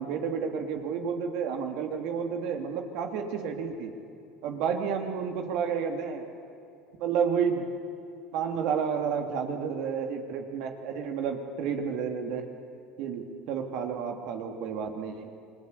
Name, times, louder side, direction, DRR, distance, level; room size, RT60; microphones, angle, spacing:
voice 1, 0.0-3.9 4.4-6.2 7.0-7.6 8.3-12.4 13.0-15.3, right 6 dB, 65° right, 4 dB, 2.9 m, -31 dB
28.0 x 20.5 x 8.2 m, 2.5 s
hypercardioid pair, 80°, 0 cm